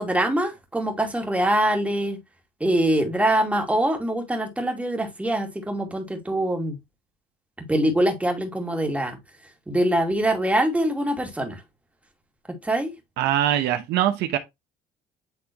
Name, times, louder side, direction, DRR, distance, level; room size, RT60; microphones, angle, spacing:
voice 1, 0.0-2.2 2.6-6.8 7.7-9.2 9.7-11.6 12.6-12.9, right 1 dB, 10° right, 2.4 m, -23 dB
voice 2, 13.2-14.4, right 11 dB, 80° right, 1.0 m, -22 dB
9.4 x 3.6 x 3.0 m
cardioid pair, 110°, 17 cm